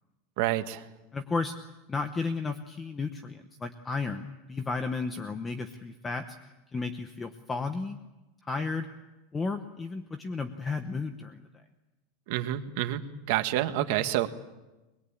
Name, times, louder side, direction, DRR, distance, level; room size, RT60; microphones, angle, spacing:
voice 1, 0.4-0.8 12.3-13.0 13.3-14.3, right 13 dB, 50° right, 8 dB, 1.6 m, -28 dB
voice 2, 1.1-1.6 1.9-6.4 6.7-8.0 8.4-8.9 9.3-11.4, left 4 dB, 10° left, 7 dB, 0.9 m, -33 dB
24.0 x 21.5 x 8.6 m, 1.1 s
supercardioid pair, 175°, 0 cm